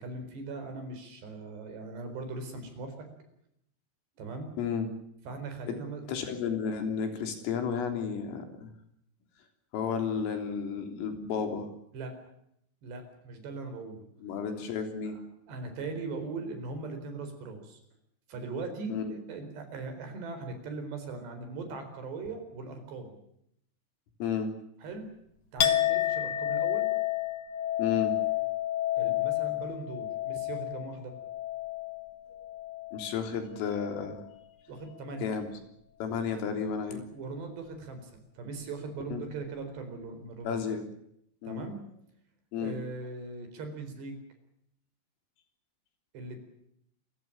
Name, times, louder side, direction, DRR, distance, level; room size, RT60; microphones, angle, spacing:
voice 1, 0.0-3.1 4.2-4.5 5.3-6.0 11.9-12.2 12.8-14.0 15.1-15.2 15.5-17.8 18.3-23.2 24.8-25.1 25.5-26.9 29.0-31.1 34.7-35.4 36.9-40.6 41.5-41.8 42.6-44.2 46.1-46.4, right 3 dB, 60° right, 7 dB, 6.2 m, -40 dB
voice 2, 4.6-4.9 5.7-5.8 6.1-8.7 9.7-11.7 14.2-15.2 18.9-19.2 24.2-24.5 27.8-28.2 32.9-34.2 35.2-35.5 36.0-37.0 39.1-39.2 40.4-40.8 41.4-41.6 42.5-42.8, left 6 dB, 85° left, 6 dB, 6.0 m, -32 dB
Chink clink, 25.6-33.3 33.6-34.3, left 12 dB, 70° left, 1.8 m, -31 dB
28.0 x 16.0 x 8.7 m, 0.74 s
omnidirectional pair, 5.7 m